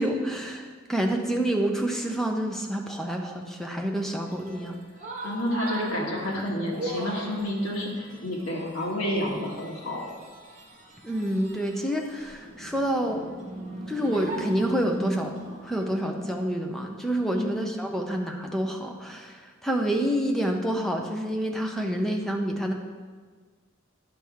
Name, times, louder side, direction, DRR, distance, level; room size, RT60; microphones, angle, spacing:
voice 1, 0.0-4.8 11.0-13.4 13.9-15.3 15.6-22.7, right 1 dB, ahead, 2 dB, 0.6 m, -28 dB
sound 1, 4.3-16.3, right 1 dB, 35° right, 1.5 m, -39 dB
voice 2, 5.2-10.1 17.3-17.6, left 1 dB, 90° left, -2 dB, 1.8 m, -29 dB
10.5 x 6.1 x 3.5 m, 1.5 s
head